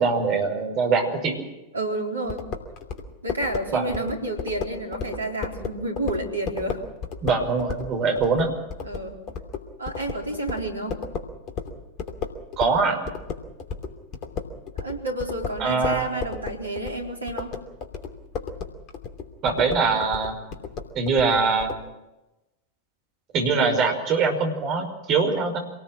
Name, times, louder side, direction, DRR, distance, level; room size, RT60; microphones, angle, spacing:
voice 1, 0.0-1.4 3.7-3.9 7.2-8.5 12.6-13.1 15.6-16.1 19.4-20.4 21.0-21.7 23.3-25.6, right 4 dB, 35° right, 4 dB, 5.7 m, -23 dB
voice 2, 1.7-2.4 3.2-6.8 8.8-9.2 9.8-11.0 14.8-17.5, right 1 dB, 80° right, 2 dB, 4.2 m, -30 dB
sound 1, 2.3-12.8 13.1-21.8, left 5 dB, 35° left, 2.9 m, -34 dB
26.5 x 19.5 x 6.2 m, 0.99 s
figure-of-eight pair, 90°, 0 cm